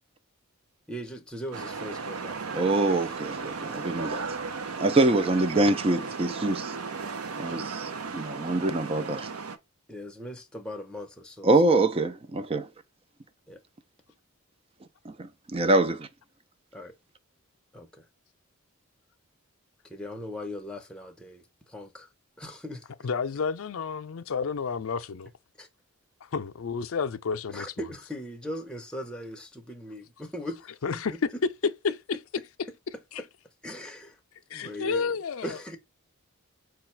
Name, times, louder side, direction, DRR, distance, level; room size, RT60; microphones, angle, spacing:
voice 1, 0.9-3.2 9.9-11.6 13.5-13.6 16.7-16.9 17.7-18.1 19.8-22.1 22.4-22.9 25.6-25.7 27.5-31.2 33.2-33.3 33.6-34.2 34.5-35.8, equal, 5° left, 0.7 m, -39 dB
sound 1, 1.5-9.6, right 4 dB, 80° right, 0.6 m, -35 dB
voice 2, 2.5-4.2 4.8-6.7 7.4-9.3 11.4-12.7 15.1-16.1, right 2 dB, 25° right, 0.4 m, -25 dB
voice 3, 23.0-25.3 26.2-27.7 30.8-31.3 34.5-35.6, left 5 dB, 70° left, 0.4 m, -31 dB
4.8 x 2.3 x 4.3 m
head